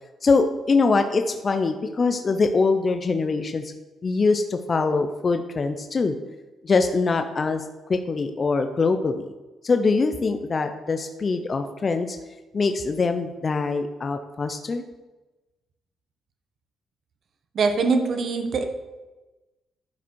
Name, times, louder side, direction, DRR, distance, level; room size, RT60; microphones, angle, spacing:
voice 1, 0.2-3.7 4.0-6.1 6.6-7.6 7.9-9.2 9.6-12.2 12.5-14.8, left 4 dB, 35° left, 7 dB, 0.6 m, -23 dB
voice 2, 17.5-18.6, right 4 dB, 55° right, 6 dB, 1.1 m, -22 dB
11.5 x 4.9 x 4.6 m, 1.1 s
cardioid pair, 90°, 0 cm